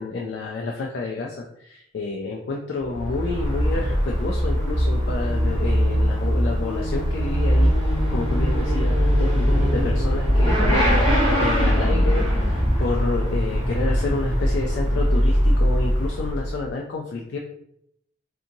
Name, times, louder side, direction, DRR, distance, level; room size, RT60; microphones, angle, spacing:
voice 1, 0.0-17.4, left 3 dB, 60° left, 0 dB, 0.3 m, -29 dB
Motorcycle / Accelerating revving vroom, 2.8-16.6, equal, 25° right, 1.0 m, -21 dB
2.7 x 2.6 x 2.6 m, 0.73 s
head